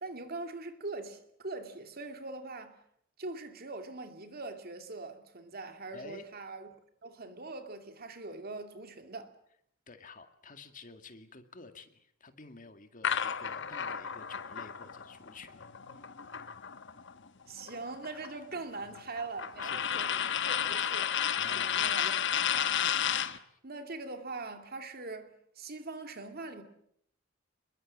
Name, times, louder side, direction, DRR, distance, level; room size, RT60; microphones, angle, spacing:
voice 1, 0.0-2.8 3.2-6.7 7.0-9.3 17.5-21.2 21.5-22.2 22.5-23.2 23.6-26.6, right 3 dB, 50° right, 2.5 m, -42 dB
voice 2, 5.9-6.3 9.9-15.7 19.6-20.1 21.4-21.9 23.5-23.6, left 3 dB, 40° left, 2.1 m, -51 dB
sound 1, 13.0-17.1 17.4-23.4, left 9 dB, 60° left, 1.3 m, -32 dB
26.0 x 22.0 x 7.4 m
head